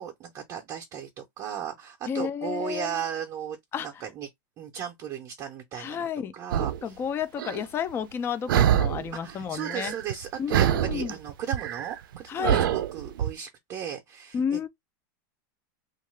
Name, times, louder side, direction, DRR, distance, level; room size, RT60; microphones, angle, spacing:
voice 1, 0.0-4.3 4.6-6.1 6.3-7.0 9.2-14.7, right 8 dB, 30° right, 0.6 m, -36 dB
voice 2, 2.1-3.0 3.7-4.0 5.7-6.3 6.8-10.0 10.4-11.2 12.3-12.7 14.3-14.7, left 7 dB, 20° left, 0.4 m, -31 dB
sound 1, 6.5-6.8 7.4-7.6 8.5-9.1 9.4-10.2 10.5-13.3, right 10 dB, 85° right, 0.4 m, -25 dB
2.7 x 2.3 x 3.1 m
supercardioid pair, 145°, 11 cm